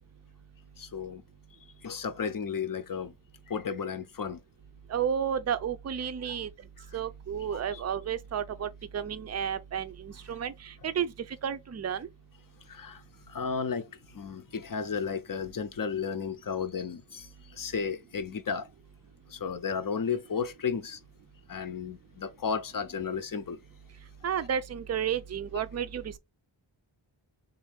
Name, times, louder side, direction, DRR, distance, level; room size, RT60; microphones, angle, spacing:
voice 1, 0.8-1.2 1.8-3.1 3.5-4.4 6.3-6.4 7.5-7.8 12.7-13.0 13.3-13.8 14.1-17.3 17.6-18.7 19.3-21.0 21.5-23.6, left 6 dB, 45° left, 0.6 m, -33 dB
voice 2, 4.9-6.5 6.9-12.1 24.2-26.2, right 8 dB, 35° right, 0.4 m, -32 dB
3.7 x 2.5 x 3.5 m
wide cardioid pair, 110°, 47 cm